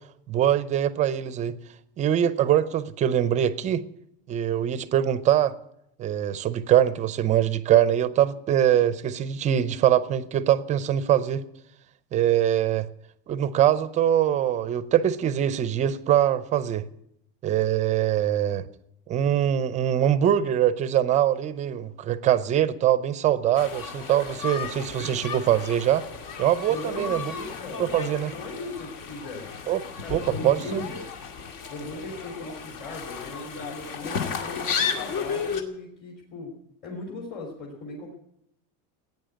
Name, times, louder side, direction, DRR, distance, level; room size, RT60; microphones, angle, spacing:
voice 1, 0.3-1.5 2.0-3.8 4.3-5.5 6.0-11.4 12.1-12.9 13.3-16.9 17.4-18.7 19.1-26.0 26.4-27.3 27.8-28.3 29.7-29.8 30.1-30.9, right 11 dB, 20° right, 0.6 m, -23 dB
sound 1, 23.5-35.6, left 6 dB, 60° left, 2.3 m, -34 dB
voice 2, 24.7-25.2 26.7-29.5 30.0-31.0 31.7-36.5 36.8-38.1, left 2 dB, 30° left, 3.1 m, -38 dB
16.5 x 9.3 x 9.1 m
cardioid pair, 170°, 31 cm